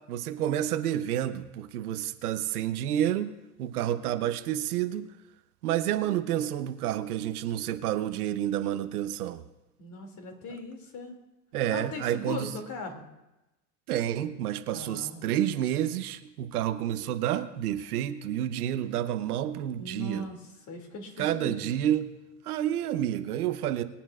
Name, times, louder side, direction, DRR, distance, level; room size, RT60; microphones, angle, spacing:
voice 1, 0.1-3.3 3.6-5.0 5.6-9.4 11.5-12.5 13.9-20.3 21.2-22.1 22.4-23.8, right 11 dB, 85° right, 9 dB, 1.0 m, -29 dB
voice 2, 9.8-11.1 11.7-13.1 14.7-15.2 19.8-21.6, left 3 dB, 40° left, 2 dB, 2.7 m, -39 dB
23.5 x 9.0 x 2.5 m, 0.98 s
hypercardioid pair, 95°, 44 cm